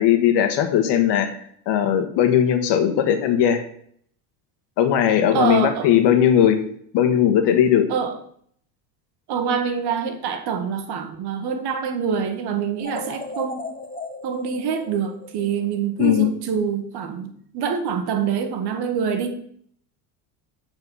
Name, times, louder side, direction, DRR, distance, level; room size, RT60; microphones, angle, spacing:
voice 1, 0.0-3.6 4.8-6.6 6.9-7.9 16.0-16.3, left 9 dB, 65° left, 8 dB, 1.4 m, -18 dB
voice 2, 5.3-5.9 7.9-8.1 9.3-13.7 14.2-19.4, right 6 dB, 55° right, 8 dB, 1.4 m, -25 dB
sound 1, 12.8-16.0, left 3 dB, 15° left, 1.3 m, -36 dB
8.2 x 4.4 x 5.5 m, 0.63 s
supercardioid pair, 95°, 46 cm